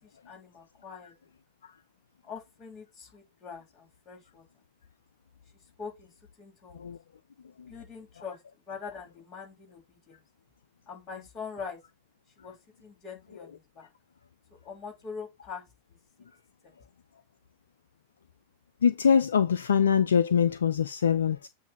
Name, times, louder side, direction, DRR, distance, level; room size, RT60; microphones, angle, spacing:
voice 1, 0.0-1.1 2.2-4.4 5.8-6.1 6.4-6.9 7.7-10.2 10.9-11.8 12.4-13.9 14.6-15.6 16.6-16.7, left 5 dB, 30° left, 3.4 m, -43 dB
voice 2, 18.8-21.5, left 7 dB, 65° left, 0.4 m, -23 dB
8.2 x 2.7 x 5.1 m
figure-of-eight pair, 90°, 0 cm